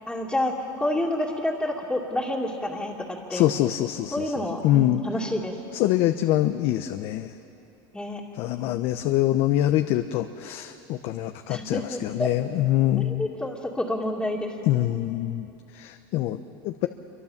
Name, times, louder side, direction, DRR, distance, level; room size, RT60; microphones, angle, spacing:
voice 1, 0.1-3.4 4.1-5.6 7.9-8.2 11.5-12.3 13.0-14.5, left 1 dB, 5° left, -5 dB, 2.5 m, -29 dB
voice 2, 3.3-5.0 5.7-7.3 8.3-13.3 14.7-15.5 15.7-16.9, left 14 dB, 55° left, 8 dB, 0.9 m, -25 dB
27.0 x 24.0 x 7.4 m, 3.0 s
supercardioid pair, 120°, 12 cm